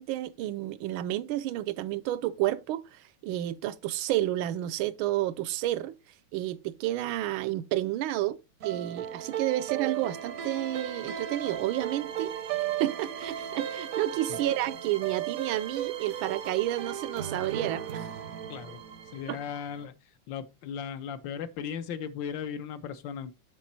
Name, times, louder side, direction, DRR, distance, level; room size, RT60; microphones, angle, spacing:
voice 1, 0.0-6.0 6.3-8.4 8.6-12.3 12.8-18.1 19.3-19.4, right 14 dB, 85° right, 1.4 m, -30 dB
sound 1, 8.6-19.9, right 10 dB, 60° right, 0.9 m, -36 dB
voice 2, 19.1-19.9 20.3-23.3, left 7 dB, 75° left, 1.4 m, -37 dB
7.3 x 5.9 x 4.1 m
omnidirectional pair, 2.2 m